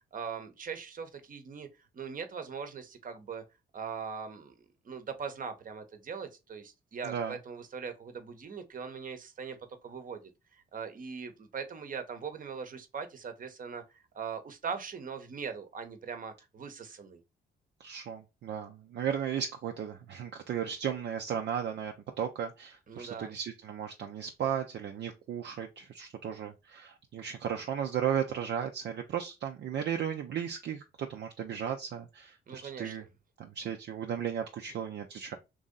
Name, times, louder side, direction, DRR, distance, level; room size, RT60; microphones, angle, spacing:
voice 1, 0.1-1.7 1.9-3.4 3.7-9.6 9.8-10.2 10.5-17.2 22.9-23.3 32.5-33.1, right 6 dB, 45° right, 0.9 m, -41 dB
voice 2, 7.0-7.4 17.8-33.0 33.6-35.4, right 8 dB, 60° right, 0.5 m, -35 dB
3.0 x 2.7 x 3.7 m
supercardioid pair, 60°, 20 cm